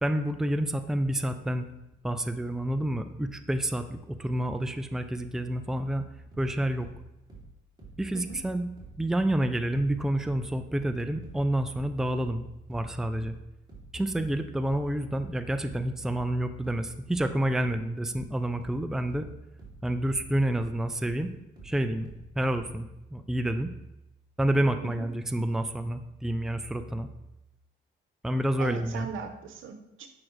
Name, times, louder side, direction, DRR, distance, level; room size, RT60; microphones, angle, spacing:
voice 1, 0.0-1.7 2.0-6.1 6.4-6.9 8.0-8.7 9.0-13.3 13.9-19.3 19.8-21.3 21.6-23.7 24.4-27.1 28.2-29.1, right 1 dB, ahead, 8 dB, 0.5 m, -29 dB
sound 1, 6.3-9.5 9.8-22.8, right 3 dB, 20° right, 2.9 m, -49 dB
voice 2, 28.6-30.1, right 6 dB, 80° right, 7 dB, 0.9 m, -39 dB
8.5 x 6.0 x 3.2 m, 0.92 s
cardioid pair, 90°, 20 cm